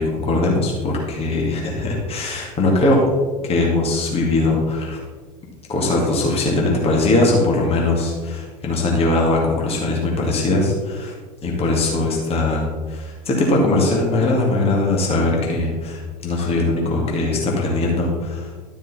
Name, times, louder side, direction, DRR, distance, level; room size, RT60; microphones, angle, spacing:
voice 1, 0.0-3.0 3.4-5.0 5.7-11.1 11.4-18.5, left 2 dB, 30° left, -2 dB, 2.2 m, -20 dB
12.5 x 5.2 x 4.2 m, 1.4 s
figure-of-eight pair, 75°, 21 cm